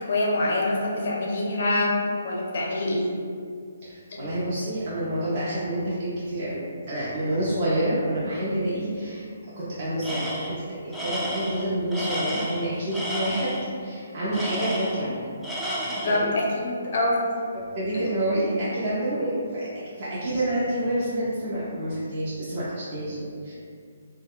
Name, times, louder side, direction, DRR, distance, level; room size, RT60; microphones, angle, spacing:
voice 1, 0.0-3.2 4.1-4.2 16.0-17.2, left 2 dB, 55° left, -2 dB, 0.6 m, -25 dB
voice 2, 3.8-9.3 9.6-13.5 13.8-15.3 16.0-16.3 17.7-19.7 20.0-23.5, right 1 dB, 40° right, -9 dB, 0.6 m, -28 dB
Tools, 10.0-10.6 10.9-13.7 14.3-15.1 15.4-16.3, equal, ahead, 0.4 m, -31 dB
2.2 x 2.1 x 3.5 m, 2.1 s
figure-of-eight pair, 140°, 0 cm